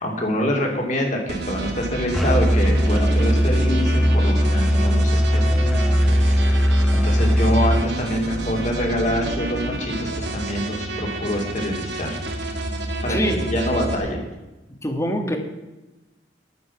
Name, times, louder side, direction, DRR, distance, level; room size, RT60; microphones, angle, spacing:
voice 1, 0.0-6.0 6.9-12.2 13.0-13.2 13.4-14.2, equal, 45° left, 1 dB, 3.0 m, -25 dB
sound 1, 1.3-13.9, right 2 dB, 65° right, 1.7 m, -30 dB
Musical instrument, 2.1-7.8, equal, ahead, 0.7 m, -18 dB
voice 2, 13.1-13.5 14.7-15.4, equal, 15° left, 5 dB, 1.6 m, -24 dB
10.5 x 9.8 x 5.9 m, 1.1 s
head